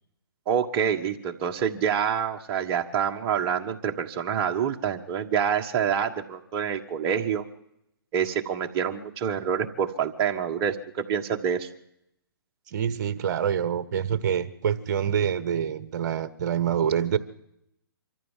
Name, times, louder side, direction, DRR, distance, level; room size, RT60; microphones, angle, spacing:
voice 1, 0.5-7.4 8.1-10.8 11.1-11.7, right 8 dB, 25° right, 3 dB, 1.5 m, -27 dB
voice 2, 12.7-17.2, right 8 dB, 50° right, 15 dB, 1.3 m, -26 dB
25.0 x 14.0 x 7.5 m, 0.78 s
hypercardioid pair, 150°, 13 cm